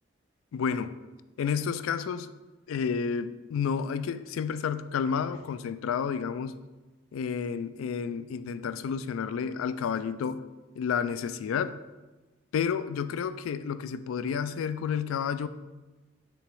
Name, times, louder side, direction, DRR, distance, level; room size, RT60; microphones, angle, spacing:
voice 1, 0.5-1.0 1.4-2.3 2.7-6.6 7.1-10.4 10.8-11.8 12.5-15.5, left 6 dB, 80° left, 0.3 m, -30 dB
6.9 x 2.9 x 4.7 m
head